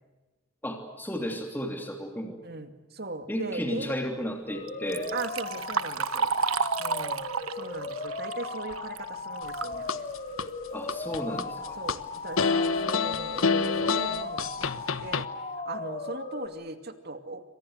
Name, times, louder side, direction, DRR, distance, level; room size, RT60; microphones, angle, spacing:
voice 1, 0.6-2.4 3.3-5.1 10.7-11.8, equal, 10° left, 3 dB, 3.0 m, -33 dB
voice 2, 2.4-4.0 5.1-6.3 6.8-7.2 7.5-10.1 11.1-15.3 15.7-17.4, right 3 dB, 50° right, 8 dB, 2.5 m, -39 dB
sound 1, 4.5-16.5, left 3 dB, 35° left, 3.0 m, -37 dB
Liquid, 4.7-9.8 10.2-10.3 11.2-11.3 11.7-12.0 12.6-12.7 13.2-13.3 13.8-14.0, right 5 dB, 85° right, 1.3 m, -32 dB
sound 2, 9.4-10.5 10.9-12.0 12.4-15.3, left 5 dB, 75° left, 1.2 m, -27 dB
29.0 x 25.5 x 6.6 m, 1.2 s
head